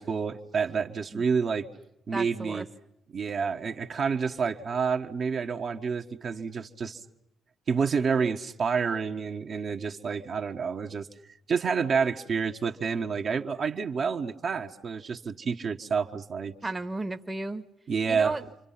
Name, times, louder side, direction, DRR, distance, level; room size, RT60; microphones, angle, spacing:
voice 1, 0.0-1.7 2.1-2.7 3.1-7.0 7.7-11.1 11.5-16.5 17.9-18.4, right 5 dB, 50° right, 3 dB, 1.4 m, -29 dB
voice 2, 2.1-2.6 16.6-17.6 18.1-18.4, right 2 dB, 20° right, 9 dB, 1.3 m, -34 dB
29.5 x 25.5 x 5.8 m, 0.81 s
hypercardioid pair, 45°, 0 cm